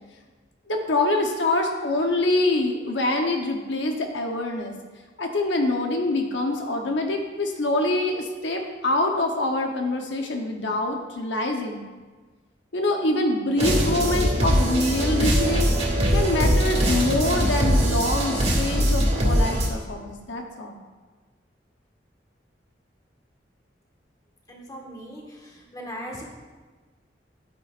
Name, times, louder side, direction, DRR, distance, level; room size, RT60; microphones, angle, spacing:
voice 1, 0.7-4.8 5.2-11.8 12.7-15.7 16.1-20.7, left 2 dB, 80° left, 2 dB, 0.9 m, -25 dB
sound 1, 13.6-19.7, equal, 35° right, 2.2 m, -22 dB
voice 2, 24.5-25.2 25.7-26.2, equal, 20° left, -1 dB, 1.6 m, -37 dB
11.0 x 9.5 x 2.5 m, 1.4 s
head